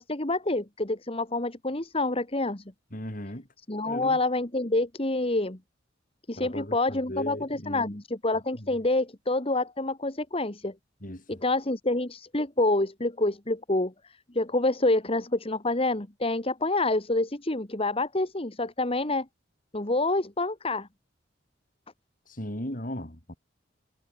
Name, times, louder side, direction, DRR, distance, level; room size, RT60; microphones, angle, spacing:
voice 1, 0.0-2.6 3.7-5.6 6.3-10.7 11.3-19.3 19.7-20.9, left 2 dB, 30° left, 2.0 m, -27 dB
voice 2, 2.9-3.5 3.9-4.2 6.4-8.0 8.5-8.8 11.0-11.4 22.3-23.4, left 1 dB, 45° left, 5.9 m, -37 dB
head